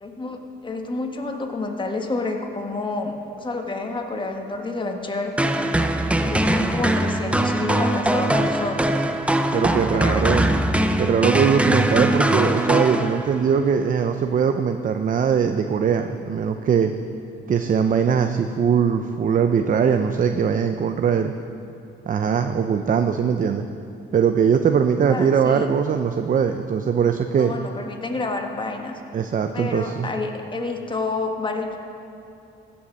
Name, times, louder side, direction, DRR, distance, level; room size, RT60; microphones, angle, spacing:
voice 1, 0.0-5.7 6.2-8.9 9.5-10.5 25.1-25.7 27.4-29.0 29.5-31.8, left 3 dB, 25° left, 3 dB, 1.5 m, -29 dB
sound 1, 5.4-13.5, right 1 dB, 5° right, 0.7 m, -21 dB
voice 2, 9.5-10.5 11.0-16.9 17.5-21.3 22.1-23.6 24.1-27.5 29.1-30.1, right 7 dB, 40° right, 7 dB, 0.6 m, -21 dB
16.0 x 7.1 x 6.4 m, 2.7 s
cardioid pair, 90°, 20 cm